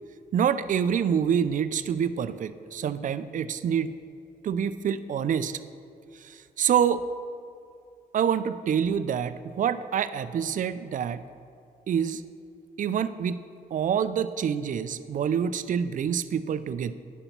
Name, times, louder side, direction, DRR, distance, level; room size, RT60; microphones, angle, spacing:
voice 1, 0.3-3.9 4.4-5.6 6.1-7.0 8.1-11.2 11.9-12.2 12.8-13.4 13.7-16.9, right 8 dB, 55° right, 14 dB, 0.4 m, -26 dB
10.0 x 4.0 x 5.9 m, 2.5 s
cardioid pair, 75°, 16 cm